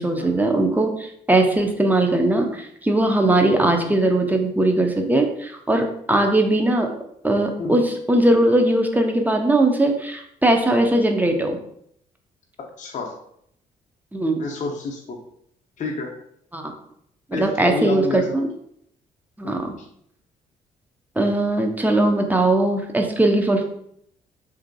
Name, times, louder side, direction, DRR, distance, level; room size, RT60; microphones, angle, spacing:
voice 1, 0.0-6.9 7.2-11.6 14.1-14.4 16.5-16.7 17.3-18.5 19.4-19.7 21.2-23.6, right 2 dB, 10° right, 4 dB, 0.6 m, -20 dB
voice 2, 12.8-13.1 14.4-15.2 15.8-16.1 17.3-18.3 19.4-19.9, left 3 dB, 45° left, 1 dB, 0.6 m, -29 dB
2.9 x 2.6 x 2.6 m, 0.71 s
hypercardioid pair, 50°, 17 cm